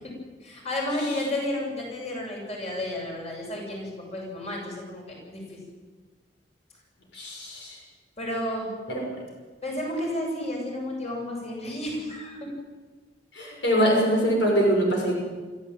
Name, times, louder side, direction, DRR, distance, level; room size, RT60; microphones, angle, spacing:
voice 1, 0.4-5.6 8.2-8.7 9.6-12.4, left 1 dB, 40° left, -1 dB, 7.8 m, -32 dB
voice 2, 7.1-7.8 8.9-9.0 13.3-15.1, equal, 75° left, -1 dB, 6.4 m, -23 dB
25.0 x 15.5 x 9.1 m, 1.4 s
head